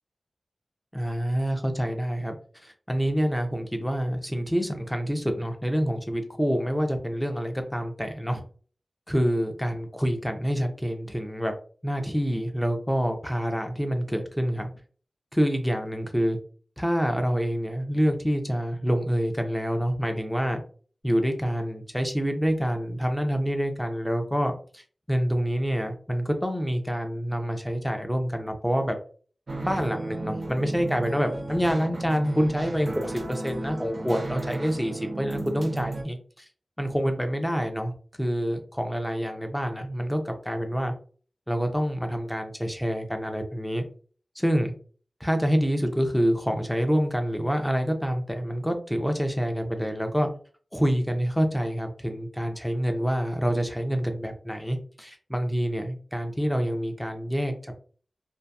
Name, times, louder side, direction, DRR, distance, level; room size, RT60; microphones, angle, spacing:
voice 1, 0.9-2.4 2.6-8.4 9.1-11.5 11.8-14.7 15.3-16.4 16.8-20.6 21.0-29.0 29.6-36.5 36.8-37.9 38.2-40.9 41.5-43.8 44.4-44.8 45.2-50.3 50.7-57.7, equal, 5° left, 5 dB, 0.5 m, -27 dB
sound 1, 29.5-36.0, right 2 dB, 55° right, 0.4 m, -34 dB
2.7 x 2.4 x 2.3 m, 0.43 s
wide cardioid pair, 85°, 0 cm